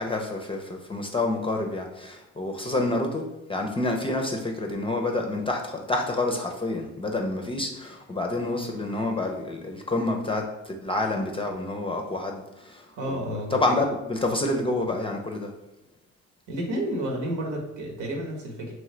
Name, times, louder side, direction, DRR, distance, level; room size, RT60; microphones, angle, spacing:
voice 1, 0.0-3.2 3.5-15.5, left 2 dB, 20° left, 2 dB, 0.5 m, -28 dB
voice 2, 12.9-13.6 16.5-18.7, right 1 dB, 75° right, 0 dB, 1.1 m, -31 dB
3.7 x 3.2 x 3.2 m, 0.94 s
cardioid pair, 90°, 30 cm